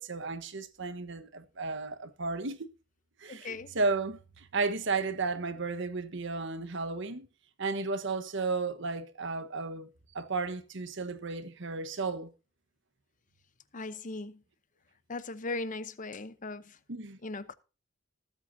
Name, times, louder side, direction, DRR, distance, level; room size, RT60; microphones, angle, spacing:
voice 1, 0.0-2.7 3.2-7.3 7.6-9.9 10.1-12.3 16.9-17.2, right 3 dB, 65° right, 1.2 m, -33 dB
voice 2, 3.3-3.7 13.7-14.4 15.1-16.8 17.2-17.5, left 3 dB, 40° left, 0.8 m, -38 dB
20.0 x 8.2 x 2.7 m
head